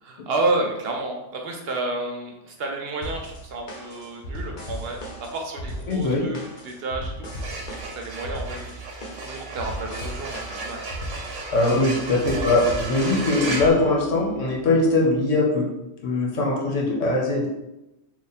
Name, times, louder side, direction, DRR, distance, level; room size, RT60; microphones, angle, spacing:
voice 1, 0.0-7.3 7.7-10.8 12.3-12.6, right 2 dB, 65° right, 2 dB, 0.7 m, -31 dB
sound 1, 3.0-13.7, equal, 45° left, 0.8 m, -36 dB
voice 2, 5.9-6.2 11.5-15.7 16.0-17.4, left 2 dB, 90° left, -2 dB, 1.3 m, -21 dB
sound 2, 7.2-14.6, right 3 dB, 90° right, 1.1 m, -35 dB
3.2 x 2.4 x 4.0 m, 0.96 s
omnidirectional pair, 1.2 m